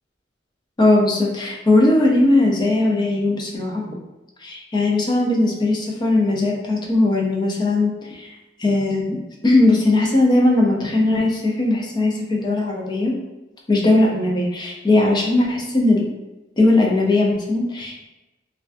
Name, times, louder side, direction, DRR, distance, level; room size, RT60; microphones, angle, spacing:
voice 1, 0.8-3.8 4.4-8.3 8.6-9.2 9.4-13.1 13.7-16.1 16.6-18.0, left 2 dB, 25° left, -1 dB, 0.3 m, -18 dB
2.4 x 2.1 x 2.4 m, 1.0 s
head